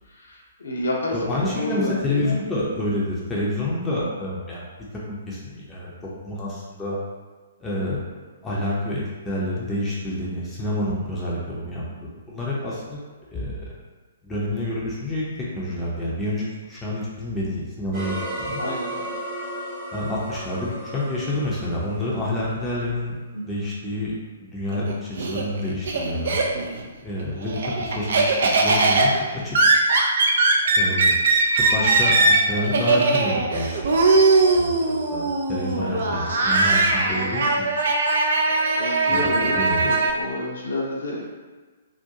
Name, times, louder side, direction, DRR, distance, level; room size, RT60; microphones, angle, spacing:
voice 1, 0.1-2.3 18.6-19.2 23.3-23.4 35.7-36.5 37.0-37.3 38.8-41.3, left 1 dB, 65° left, -3 dB, 0.6 m, -30 dB
voice 2, 1.1-4.7 5.1-5.9 6.2-7.0 7.6-8.0 8.4-11.8 12.1-13.0 13.3-13.7 14.2-18.6 19.9-24.1 24.4-26.4 27.0-29.6 30.8-31.1 31.6-34.2 34.5-37.7 39.1-39.2 39.6-39.9, left 1 dB, 10° left, -7 dB, 0.6 m, -28 dB
sound 1, 17.9-22.9, right 1 dB, 25° right, 0.8 m, -34 dB
Laughter, 24.7-26.8 27.2-40.1, right 3 dB, 55° right, 0.3 m, -20 dB
2.5 x 2.2 x 2.7 m, 1.4 s
figure-of-eight pair, 120°, 0 cm